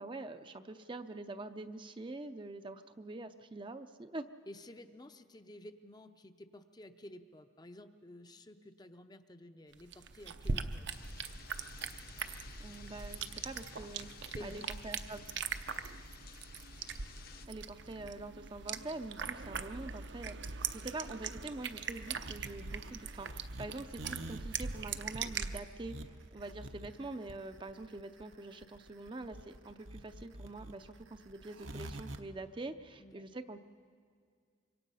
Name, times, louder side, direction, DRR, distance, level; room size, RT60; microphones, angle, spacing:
voice 1, 0.0-4.3 12.6-14.1 14.4-15.2 17.5-33.6, right 2 dB, 25° right, 8 dB, 0.5 m, -45 dB
voice 2, 4.5-10.9 14.3-14.7 15.6-15.7 33.0-33.2, left 1 dB, 20° left, 8 dB, 0.6 m, -52 dB
sound 1, 9.7-25.6, right 5 dB, 60° right, 0.7 m, -41 dB
sound 2, 10.9-17.5, left 4 dB, 50° left, 0.9 m, -54 dB
sound 3, 21.2-32.2, right 1 dB, 75° right, 1.0 m, -47 dB
25.5 x 23.5 x 5.5 m, 2.2 s
head